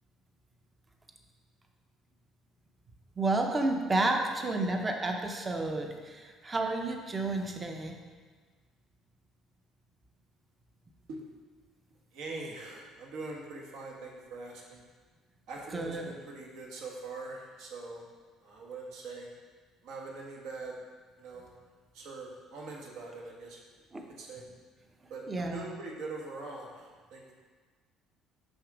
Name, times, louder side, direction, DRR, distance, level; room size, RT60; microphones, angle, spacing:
voice 1, 3.2-7.9 15.7-16.1 23.9-24.0 25.3-25.7, right 2 dB, 15° right, 3 dB, 0.6 m, -31 dB
voice 2, 12.1-14.8 15.5-18.0 18.4-19.3 19.8-20.8 21.2-21.5 21.9-23.6 24.2-24.4 25.1-27.3, right 3 dB, 70° right, -2 dB, 1.5 m, -43 dB
6.2 x 6.1 x 4.9 m, 1.5 s
cardioid pair, 175°, 0 cm